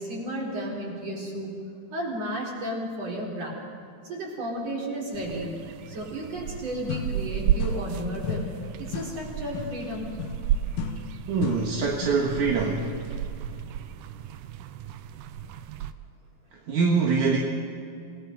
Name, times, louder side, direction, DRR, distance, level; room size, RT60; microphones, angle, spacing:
voice 1, 0.0-1.5 1.9-3.5 4.0-5.5 5.9-8.5 8.8-10.1, right 1 dB, 40° right, -2 dB, 5.1 m, -33 dB
sound 1, 5.1-15.9, right 10 dB, 80° right, 1.9 m, -33 dB
sound 2, 6.5-6.6 6.9-8.0 8.2-12.4, left 7 dB, 70° left, 2.5 m, -35 dB
voice 2, 11.3-12.9 16.7-17.4, right 5 dB, 60° right, 0 dB, 2.6 m, -24 dB
28.0 x 18.5 x 5.3 m, 2.5 s
omnidirectional pair, 4.4 m